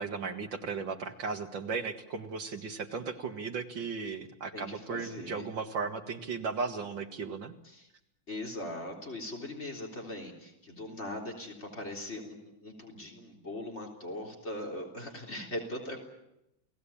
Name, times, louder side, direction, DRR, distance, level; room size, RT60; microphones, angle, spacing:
voice 1, 0.0-7.5, right 5 dB, 75° right, 6 dB, 2.5 m, -36 dB
voice 2, 4.5-5.5 7.6-7.9 8.3-16.0, left 1 dB, 35° left, 3 dB, 3.9 m, -40 dB
29.5 x 18.5 x 8.7 m, 0.87 s
omnidirectional pair, 2.1 m